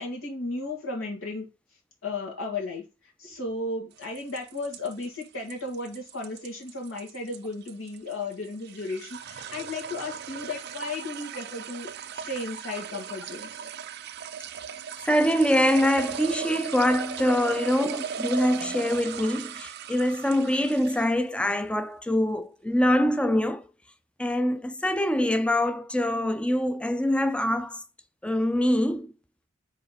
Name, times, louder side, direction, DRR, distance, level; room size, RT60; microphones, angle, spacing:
voice 1, 0.0-1.5 2.0-2.8 3.2-13.6 17.6-17.7, left 2 dB, 75° left, 2.1 m, -34 dB
sound 1, 4.0-21.2, right 7 dB, 50° right, 0.4 m, -37 dB
voice 2, 15.0-23.6 24.2-27.8 28.2-29.1, left 1 dB, 5° left, 0.4 m, -24 dB
4.7 x 4.2 x 5.0 m
head